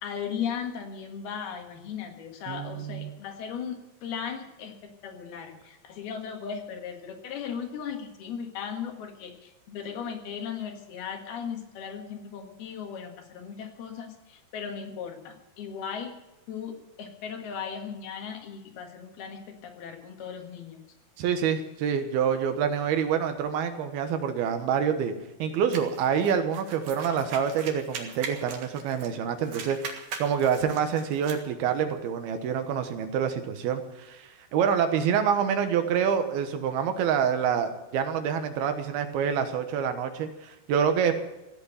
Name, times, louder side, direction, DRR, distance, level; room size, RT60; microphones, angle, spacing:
voice 1, 0.0-16.1 16.5-20.8, left 7 dB, 80° left, 3 dB, 3.8 m, -37 dB
voice 2, 2.4-3.1 21.2-25.1 25.4-41.2, right 7 dB, 85° right, 7 dB, 3.2 m, -27 dB
sound 1, 25.7-29.2 29.4-31.4, right 5 dB, 60° right, 2.9 m, -40 dB
16.0 x 8.4 x 8.9 m, 0.97 s
omnidirectional pair, 4.4 m